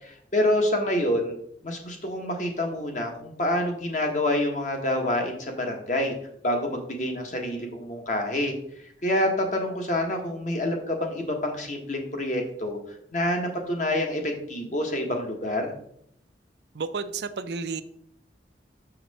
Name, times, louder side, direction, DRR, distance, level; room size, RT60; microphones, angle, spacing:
voice 1, 0.0-1.3 1.6-6.1 6.4-8.5 9.0-12.8 13.1-15.7, left 1 dB, 45° left, 2 dB, 1.3 m, -27 dB
voice 2, 16.7-17.8, right 5 dB, 70° right, 12 dB, 0.5 m, -31 dB
6.5 x 5.7 x 4.1 m, 0.69 s
head